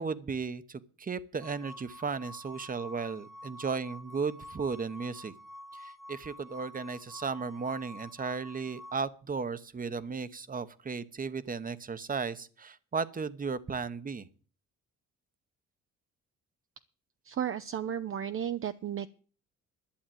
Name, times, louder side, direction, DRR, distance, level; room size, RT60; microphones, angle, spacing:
voice 1, 0.0-5.3 5.7-14.3, right 5 dB, 30° right, 14 dB, 1.0 m, -35 dB
sound 1, 1.4-9.0, left 1 dB, ahead, 1.2 m, -48 dB
voice 2, 17.2-19.1, right 9 dB, 45° right, 10 dB, 0.6 m, -33 dB
11.5 x 7.3 x 9.2 m, 0.40 s
cardioid pair, 90°, 30 cm